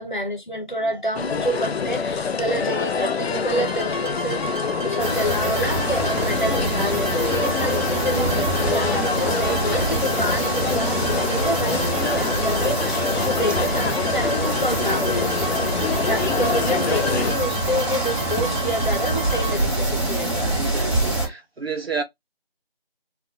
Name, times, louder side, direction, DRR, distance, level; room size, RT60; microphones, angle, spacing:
voice 1, 0.0-20.7, equal, 50° left, 0.8 m, -28 dB
sound 1, 1.1-17.3, left 5 dB, 85° left, 0.5 m, -26 dB
sound 2, 3.7-19.5, right 2 dB, 50° right, 0.6 m, -33 dB
sound 3, 5.0-21.3, right 1 dB, 30° right, 1.1 m, -25 dB
voice 2, 20.6-22.0, right 5 dB, 75° right, 0.9 m, -30 dB
2.2 x 2.1 x 2.7 m
figure-of-eight pair, 180°, 31 cm